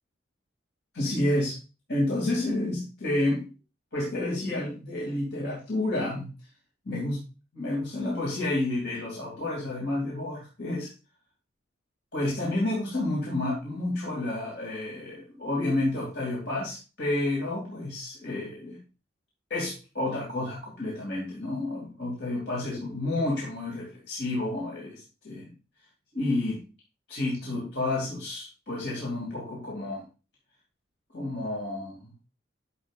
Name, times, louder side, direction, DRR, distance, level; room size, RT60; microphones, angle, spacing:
voice 1, 0.9-1.6 1.9-3.5 3.9-6.3 6.8-7.2 7.5-10.9 12.1-18.8 19.5-25.5 26.1-26.6 27.1-30.0 31.1-32.1, left 2 dB, 60° left, -4 dB, 2.8 m, -30 dB
11.0 x 6.9 x 2.5 m, 0.31 s
head